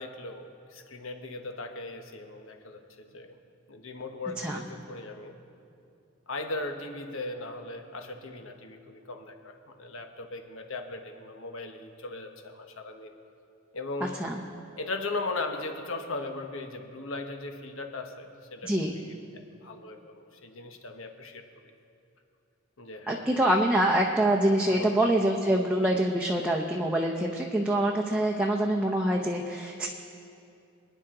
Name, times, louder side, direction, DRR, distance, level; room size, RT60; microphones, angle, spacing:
voice 1, 0.0-3.4 3.7-5.3 6.3-13.1 13.7-14.2 14.8-21.7 22.8-23.5 24.6-25.1, left 2 dB, 70° left, 5 dB, 1.2 m, -38 dB
voice 2, 18.6-19.0 23.1-29.9, right 1 dB, 5° right, -1 dB, 0.7 m, -25 dB
26.5 x 10.0 x 3.8 m, 2.6 s
head